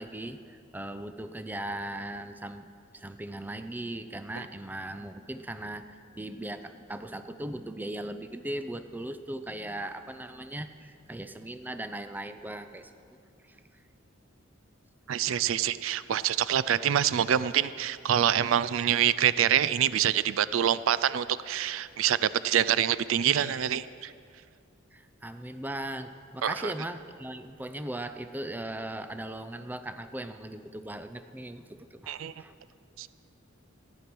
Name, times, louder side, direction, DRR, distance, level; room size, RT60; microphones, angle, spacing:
voice 1, 0.0-2.7 2.9-12.9 13.5-13.6 24.9-32.5, right 1 dB, 10° right, 9 dB, 0.5 m, -38 dB
voice 2, 15.1-24.1 26.4-26.7 32.1-32.3 33.0-33.1, right 10 dB, 75° right, 16 dB, 0.4 m, -26 dB
14.5 x 9.9 x 6.1 m, 2.3 s
head